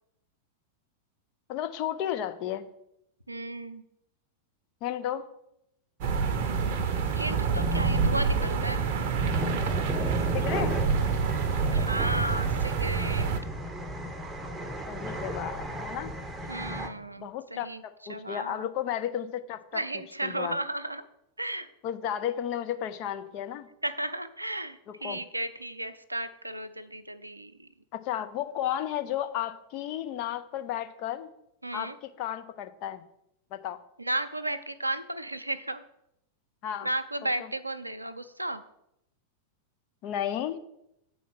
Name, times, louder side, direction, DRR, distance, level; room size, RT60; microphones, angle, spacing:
voice 1, 1.5-2.7 4.8-5.3 10.3-10.8 14.9-16.1 17.2-19.8 20.2-20.6 21.8-23.7 25.0-25.2 27.9-31.3 31.7-33.0 33.5-33.8 36.6-36.9 40.0-40.6, left 11 dB, 40° left, 9 dB, 0.6 m, -33 dB
voice 2, 3.3-3.8 7.1-8.9 11.7-13.3 16.5-17.8 18.1-18.7 19.7-21.0 21.4-21.7 23.8-27.7 31.6-32.0 34.0-35.8 36.8-38.6, right 1 dB, 85° right, 11 dB, 0.5 m, -34 dB
sound 1, 6.0-13.4, right 5 dB, 50° right, 0.7 m, -27 dB
sound 2, 9.3-16.9, equal, 15° right, 0.8 m, -35 dB
8.3 x 4.2 x 5.9 m, 0.82 s
figure-of-eight pair, 90°, 0 cm